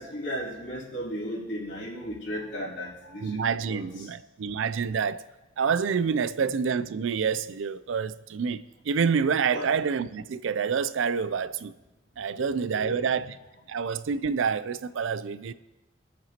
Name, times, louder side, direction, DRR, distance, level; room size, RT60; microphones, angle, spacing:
voice 1, 0.0-3.4 3.7-4.1 6.4-6.5 9.5-9.8 12.3-13.2, equal, 55° left, 3.4 m, -36 dB
voice 2, 3.2-5.2 5.6-11.7 12.2-13.3 13.7-15.5, right 6 dB, 75° right, 0.4 m, -27 dB
22.5 x 7.7 x 2.9 m
head